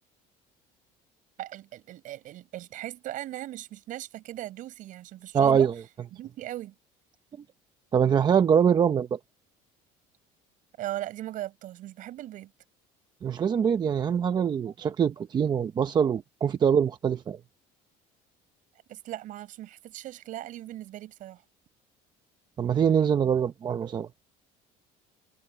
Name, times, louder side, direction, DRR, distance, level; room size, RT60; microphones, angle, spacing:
voice 1, 1.4-5.7 6.1-6.7 10.8-12.5 18.9-21.4, right 14 dB, 55° right, 6.0 m, -38 dB
voice 2, 5.3-5.7 7.9-9.2 13.2-17.4 22.6-24.1, right 7 dB, 25° right, 0.7 m, -23 dB
cardioid pair, 155°, 16 cm